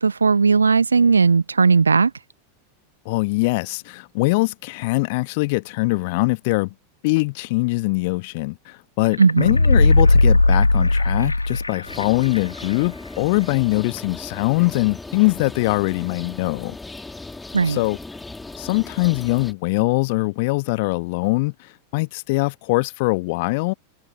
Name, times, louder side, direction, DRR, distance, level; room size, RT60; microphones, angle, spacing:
voice 1, 0.0-2.1 9.2-9.5 17.5-17.8, right 5 dB, 75° right, 0.8 m, -16 dB
voice 2, 3.0-6.7 7.0-16.8 17.6-18.0 18.6-23.7, left 25 dB, 50° left, 1.4 m, -22 dB
sound 1, 9.1-12.0 12.4-12.5, left 2 dB, 85° left, 1.4 m, -16 dB
sound 2, 11.9-19.5, left 3 dB, 10° left, 2.2 m, -37 dB
figure-of-eight pair, 90°, 0 cm